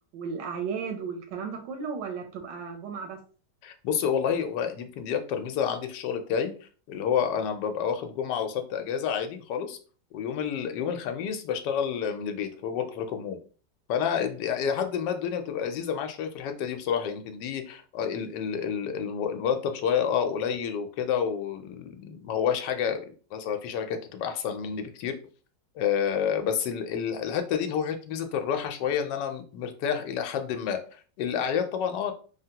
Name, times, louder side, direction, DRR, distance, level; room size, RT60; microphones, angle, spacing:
voice 1, 0.1-3.2, right 6 dB, 85° right, 4 dB, 1.2 m, -34 dB
voice 2, 3.6-6.5 6.9-9.8 10.1-13.4 13.9-25.2 25.8-32.1, left 7 dB, 80° left, 6 dB, 1.2 m, -29 dB
3.4 x 2.1 x 2.8 m, 0.39 s
omnidirectional pair, 1.9 m